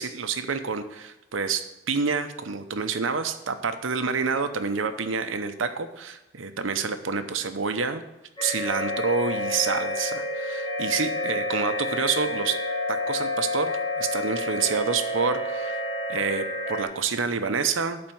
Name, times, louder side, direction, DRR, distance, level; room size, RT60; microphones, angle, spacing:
voice 1, 0.0-8.0 8.4-12.6 12.9-15.8 16.1-18.0, right 5 dB, 80° right, 9 dB, 0.8 m, -28 dB
sound 1, 8.4-16.8, left 1 dB, 25° left, 3.2 m, -29 dB
11.5 x 4.3 x 7.7 m, 0.94 s
head